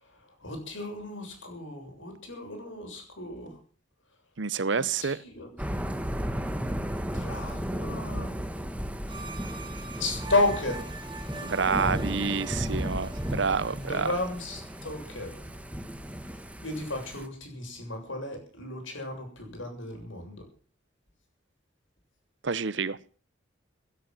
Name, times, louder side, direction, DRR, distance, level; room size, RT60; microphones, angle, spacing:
voice 1, 0.0-3.6 4.8-5.5 7.0-8.3 10.0-10.9 13.6-15.4 16.3-20.5, left 2 dB, 90° left, 7.4 m, -33 dB
voice 2, 4.4-5.2 11.4-14.1 22.4-23.0, right 5 dB, 70° right, 0.8 m, -28 dB
Thunder / Rain, 5.6-17.3, equal, 5° right, 1.3 m, -34 dB
sound 1, 9.1-14.9, right 3 dB, 25° right, 2.4 m, -44 dB
17.5 x 10.0 x 7.6 m
head